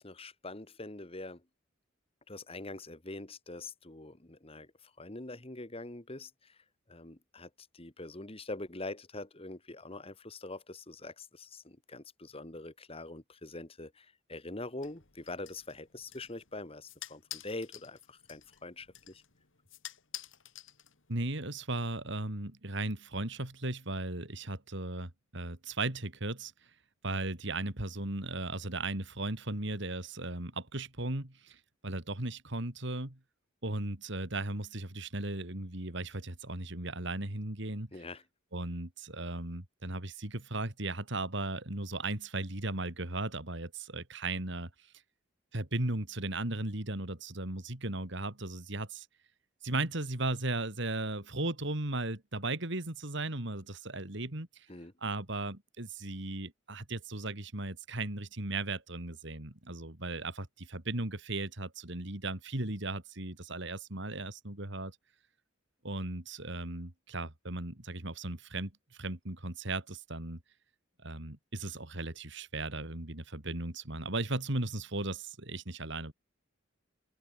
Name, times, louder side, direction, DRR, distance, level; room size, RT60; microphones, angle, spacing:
voice 1, 0.0-1.4 2.3-6.6 6.9-19.2 37.9-38.2 54.7-54.9, left 2 dB, 30° left, 1.9 m, -44 dB
sound 1, 14.8-21.3, left 13 dB, 70° left, 2.6 m, -50 dB
voice 2, 21.1-26.5 27.0-33.2 33.6-37.9 38.5-44.7 45.5-49.1 49.6-54.7 55.0-65.0 65.8-68.7 69.0-70.4 71.0-76.1, right 2 dB, 60° right, 2.9 m, -36 dB
head